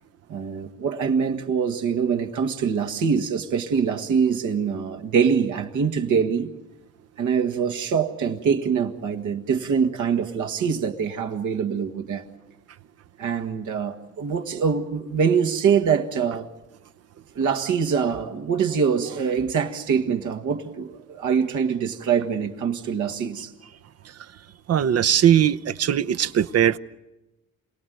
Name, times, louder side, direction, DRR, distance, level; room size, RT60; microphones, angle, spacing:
voice 1, 0.3-6.5 7.2-12.2 13.2-16.5 17.4-23.5, right 6 dB, 75° right, 1.8 m, -24 dB
voice 2, 24.7-26.8, right 10 dB, 55° right, 0.8 m, -19 dB
27.0 x 18.0 x 9.4 m
cardioid pair, 90°, 30 cm